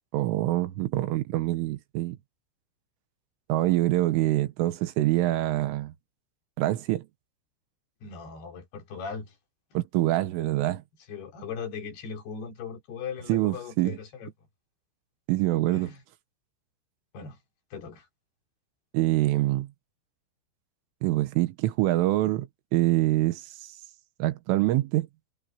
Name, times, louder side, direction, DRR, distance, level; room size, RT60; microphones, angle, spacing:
voice 1, 0.1-2.2 3.5-5.9 6.6-7.1 9.8-10.8 13.3-14.0 15.3-15.9 18.9-19.7 21.0-23.4 24.2-25.1, right 16 dB, 85° right, 3.8 m, -25 dB
voice 2, 8.0-9.3 11.1-14.3 15.7-16.0 17.1-17.4 17.7-18.1, left 6 dB, 55° left, 5.3 m, -38 dB
omnidirectional pair, 5.6 m